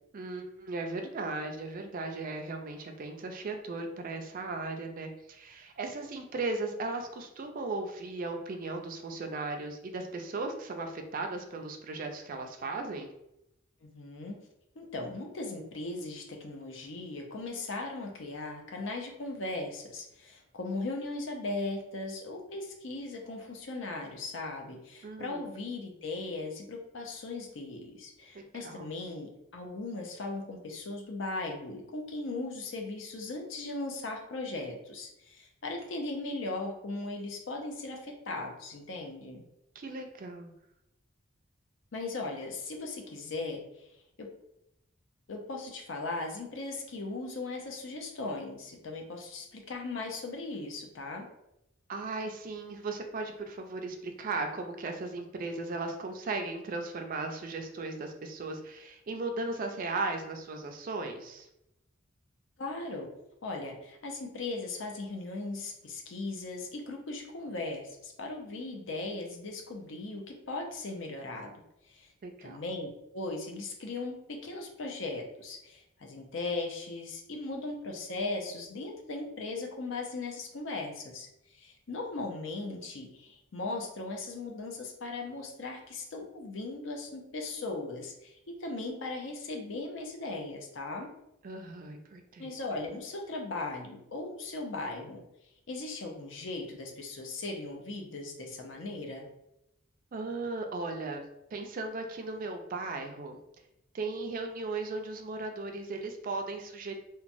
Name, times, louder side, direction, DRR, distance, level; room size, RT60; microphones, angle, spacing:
voice 1, 0.1-13.1 25.0-25.4 28.3-28.9 39.8-40.5 51.9-61.5 72.2-72.6 91.4-92.5 100.1-101.3 101.5-103.4 103.9-107.0, right 3 dB, 45° right, 4 dB, 0.4 m, -37 dB
voice 2, 13.8-14.4 14.8-39.4 41.9-43.9 44.2-44.3 45.3-51.3 62.6-63.1 63.4-71.5 71.8-72.1 72.4-91.1 92.4-95.2 95.7-99.3, left 2 dB, 70° left, 2 dB, 0.6 m, -38 dB
3.0 x 2.2 x 2.6 m, 0.84 s
head